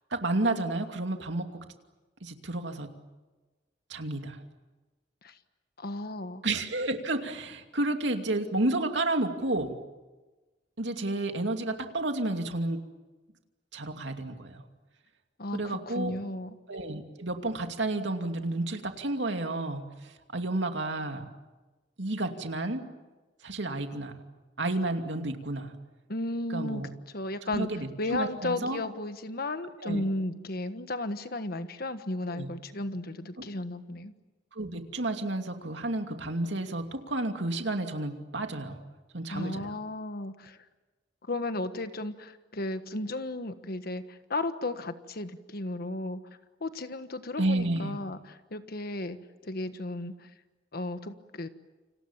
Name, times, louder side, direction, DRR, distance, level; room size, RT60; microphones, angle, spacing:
voice 1, 0.1-1.5 2.2-2.9 3.9-4.4 6.4-9.7 10.8-12.8 13.7-14.6 15.5-16.2 16.7-21.3 22.0-22.8 23.4-24.1 24.6-25.7 26.5-26.9 27.5-28.8 29.8-30.0 32.3-32.5 34.5-38.8 39.1-39.7 47.4-48.0, right 2 dB, 75° right, 5 dB, 2.7 m, -31 dB
voice 2, 5.8-6.4 15.4-16.6 26.1-26.8 27.1-34.1 39.3-40.6 41.3-46.2 46.6-49.2 49.4-50.3 50.7-51.5, left 2 dB, 55° left, 10 dB, 1.5 m, -34 dB
29.5 x 27.0 x 7.4 m, 1.2 s
head